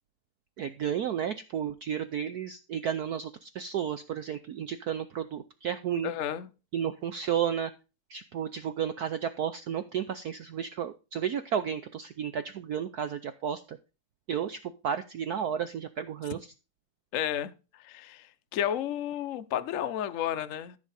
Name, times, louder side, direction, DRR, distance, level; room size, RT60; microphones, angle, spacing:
voice 1, 0.6-6.1 6.7-7.7 8.1-13.8 14.3-16.5, right 8 dB, 75° right, 0.9 m, -32 dB
voice 2, 6.0-6.5 17.1-20.8, left 10 dB, 80° left, 0.7 m, -32 dB
14.0 x 6.2 x 4.1 m
omnidirectional pair, 2.4 m